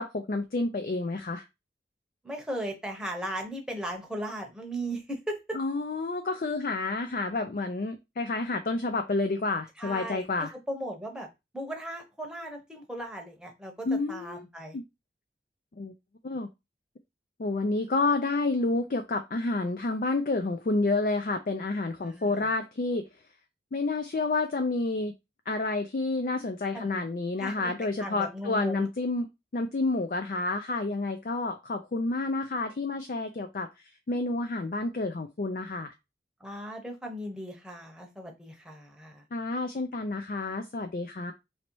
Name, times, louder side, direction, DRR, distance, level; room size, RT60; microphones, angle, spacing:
voice 1, 0.0-1.4 5.5-10.5 13.8-14.4 14.7-14.8 15.8-15.9 16.2-16.5 17.4-23.1 23.7-25.1 25.5-29.3 29.5-33.7 34.1-35.9 39.3-41.3, left 3 dB, 50° left, 7 dB, 0.4 m, -29 dB
voice 2, 2.2-5.6 9.8-11.3 11.5-14.8 22.0-22.5 26.7-27.0 27.4-27.7 28.0-28.9 36.4-39.2, right 1 dB, 5° right, 1 dB, 0.9 m, -37 dB
3.0 x 2.8 x 4.5 m, 0.23 s
head